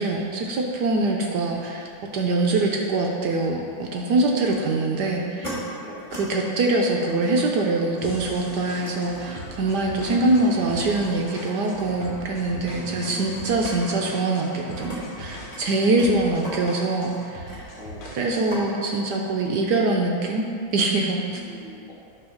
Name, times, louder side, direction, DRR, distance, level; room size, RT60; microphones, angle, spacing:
voice 1, 0.0-1.9 2.1-5.6 6.1-17.7 18.1-20.5 20.7-21.4, right 2 dB, 70° right, 0 dB, 1.0 m, -24 dB
voice 2, 4.3-4.6 5.8-6.1 12.7-13.5 15.8-16.5 17.7-18.6 21.3-21.9, left 1 dB, 5° right, -7 dB, 0.9 m, -43 dB
sound 1, 4.5-4.6 5.1-5.5 5.9-6.2 6.5-15.0 15.3-18.2 18.5-18.6, equal, 15° left, 1.7 m, -40 dB
sound 2, 8.0-18.7, left 2 dB, 65° left, 1.7 m, -40 dB
10.5 x 3.8 x 5.6 m, 2.5 s
omnidirectional pair, 2.4 m